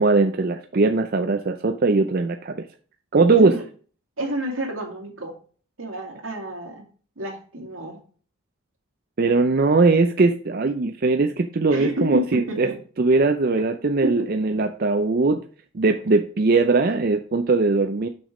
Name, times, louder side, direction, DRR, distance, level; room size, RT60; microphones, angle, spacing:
voice 1, 0.0-2.7 3.1-3.6 9.2-12.7 13.0-15.4 15.7-18.1, right 3 dB, 45° right, 7 dB, 0.5 m, -20 dB
voice 2, 3.3-3.6 4.2-5.3 5.8-6.8 7.2-8.0 11.7-12.7 14.0-14.2, right 1 dB, 80° right, 1 dB, 2.4 m, -29 dB
6.1 x 6.1 x 4.9 m, 0.42 s
head